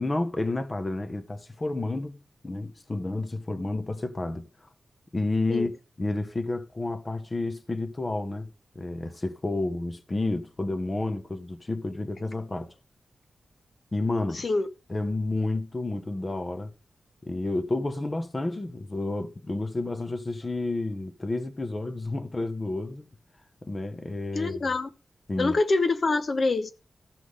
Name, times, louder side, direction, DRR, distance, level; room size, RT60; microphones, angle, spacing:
voice 1, 0.0-2.2 2.4-4.5 5.1-5.7 6.0-8.5 8.7-12.7 13.9-14.4 14.9-16.7 17.2-23.1 23.6-24.7 25.3-25.6, left 2 dB, 25° left, 1.1 m, -30 dB
voice 2, 14.3-14.7 24.3-24.9 25.4-26.7, left 3 dB, 45° left, 0.9 m, -25 dB
14.0 x 6.1 x 5.0 m
wide cardioid pair, 135°, 0 cm